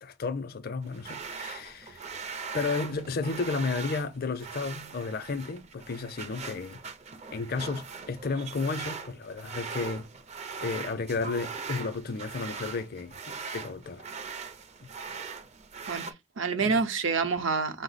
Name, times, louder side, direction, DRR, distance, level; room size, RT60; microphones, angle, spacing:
voice 1, 0.0-2.0 2.5-6.8 7.3-10.1 10.6-14.0 16.6-16.8, left 4 dB, 50° left, 0.5 m, -33 dB
sound 1, 0.8-16.1, right 5 dB, 35° right, 0.4 m, -40 dB
voice 2, 15.9-17.8, right 4 dB, 75° right, 0.7 m, -28 dB
5.2 x 2.0 x 4.0 m
head